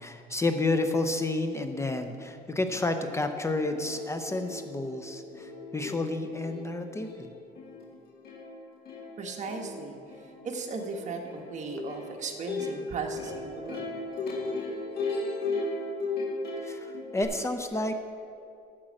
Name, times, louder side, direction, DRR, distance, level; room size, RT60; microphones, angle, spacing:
voice 1, 0.0-7.3 16.6-17.9, left 2 dB, 15° left, 7 dB, 0.6 m, -30 dB
Plucked string instrument, 3.4-3.5 3.7-17.2, left 3 dB, 65° left, 2.0 m, -37 dB
voice 2, 9.2-10.0 10.4-13.9, right 4 dB, 45° right, 2 dB, 1.4 m, -36 dB
10.5 x 6.2 x 7.6 m, 2.5 s
cardioid pair, 110°, 17 cm